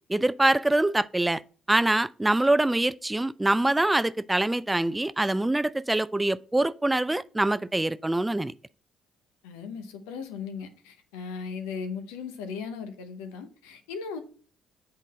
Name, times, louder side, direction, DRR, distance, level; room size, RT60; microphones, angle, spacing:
voice 1, 0.1-1.4 1.7-8.5, right 2 dB, 15° right, 0.3 m, -24 dB
voice 2, 9.4-14.2, left 5 dB, 80° left, 0.8 m, -37 dB
8.2 x 3.8 x 4.1 m
hypercardioid pair, 45°, 0 cm